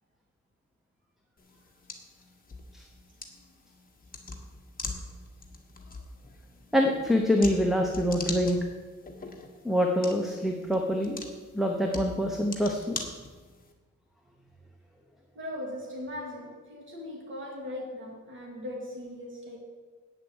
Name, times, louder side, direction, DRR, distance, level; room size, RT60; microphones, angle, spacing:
sound 1, 1.4-13.7, left 3 dB, 30° left, 1.4 m, -42 dB
voice 1, 6.7-8.6 9.6-11.2 11.5-13.0, equal, ahead, 2 dB, 0.9 m, -25 dB
voice 2, 15.3-19.6, left 1 dB, 40° right, -2 dB, 2.5 m, -39 dB
9.0 x 7.5 x 8.0 m, 1.4 s
wide cardioid pair, 170°, 30 cm